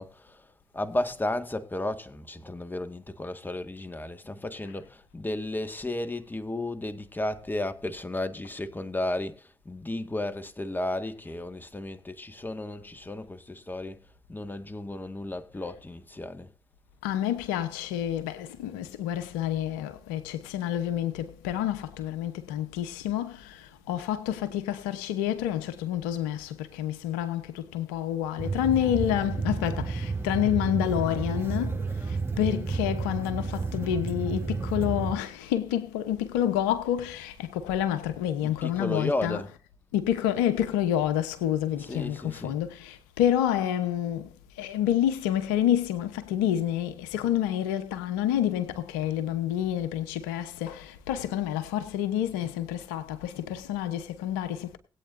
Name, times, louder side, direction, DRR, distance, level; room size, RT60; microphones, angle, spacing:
voice 1, 0.0-16.5 38.4-39.6 41.8-42.6, left 1 dB, 20° left, 1.8 m, -34 dB
voice 2, 17.0-39.4 39.9-54.8, left 11 dB, 90° left, 1.0 m, -28 dB
sound 1, 28.4-35.2, right 4 dB, 25° right, 2.9 m, -31 dB
20.0 x 8.7 x 2.7 m
hypercardioid pair, 45°, 10 cm